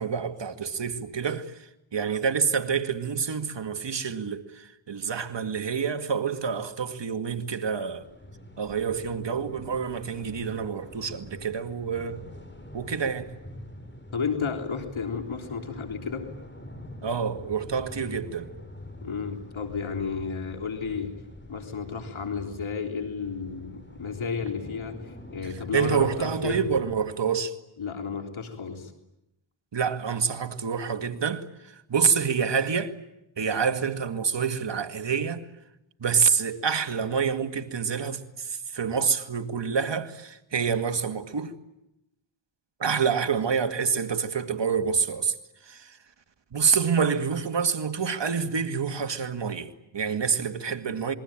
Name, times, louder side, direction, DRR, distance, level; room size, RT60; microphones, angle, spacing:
voice 1, 0.0-8.1 8.6-12.2 12.7-13.3 17.0-18.5 25.4-27.6 29.7-32.9 33.4-35.5 36.0-41.5 42.8-45.3 45.6-46.0 46.5-51.1, right 6 dB, 60° right, 2.2 m, -27 dB
sound 1, 8.0-27.1, left 1 dB, 20° left, 7.3 m, -45 dB
voice 2, 14.1-16.3 19.0-21.1 21.5-26.6 27.8-28.9, left 5 dB, 70° left, 3.7 m, -32 dB
27.5 x 22.5 x 9.0 m
cardioid pair, 55°, 49 cm